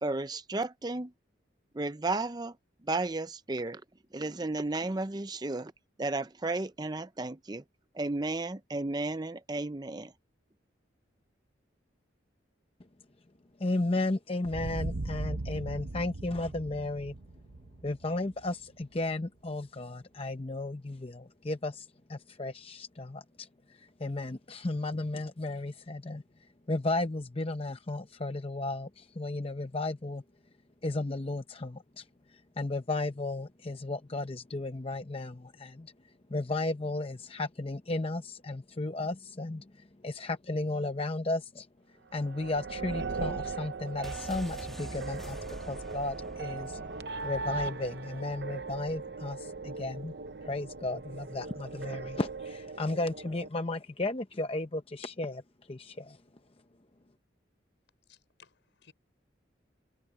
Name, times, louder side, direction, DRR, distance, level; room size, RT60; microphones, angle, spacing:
voice 1, 0.0-1.1 1.7-2.6 2.8-3.8 4.1-5.7 6.0-7.6 7.9-10.1, right 2 dB, 20° right, 0.6 m, -33 dB
voice 2, 13.6-17.1 17.8-26.2 26.7-30.2 30.8-32.0 32.3-35.9 36.3-41.7 42.1-46.8 47.2-50.1 50.4-55.4 55.7-56.2, left 2 dB, 30° left, 0.7 m, -34 dB
sound 1, 14.4-19.0, right 2 dB, 85° right, 0.9 m, -38 dB
sound 2, 42.1-53.5, right 4 dB, 60° right, 0.7 m, -39 dB
sound 3, 44.0-47.8 48.1-48.2, equal, ahead, 1.4 m, -46 dB
voice 3, 58.1-58.9, left 6 dB, 75° left, 4.7 m, -60 dB
head